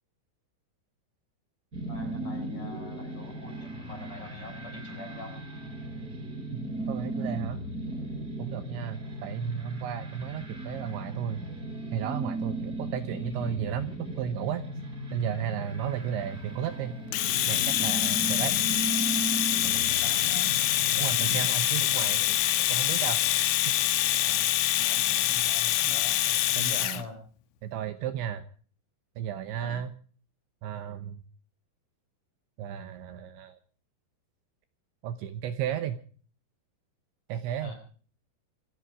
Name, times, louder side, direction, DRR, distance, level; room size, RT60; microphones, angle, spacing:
sound 1, 1.7-21.5, right 2 dB, 20° right, 5.2 m, -36 dB
voice 1, 1.9-5.4 15.8-15.9 19.5-20.5 24.2-24.5 24.8-27.2 29.6-29.8 37.6-37.7, left 3 dB, 30° left, 5 dB, 4.4 m, -44 dB
voice 2, 6.9-7.6 8.4-11.4 11.9-14.6 15.1-17.0 17.5-18.6 21.0-22.4 22.7-23.2 23.7-23.8 26.6-27.0 27.6-28.4 29.2-29.9 30.6-31.2 32.6-33.6 35.0-36.0 37.3-37.7, right 9 dB, 75° right, 10 dB, 2.9 m, -34 dB
Domestic sounds home sounds, 17.1-27.0, left 14 dB, 75° left, 3.0 m, -25 dB
27.5 x 11.0 x 4.8 m, 0.42 s
omnidirectional pair, 5.9 m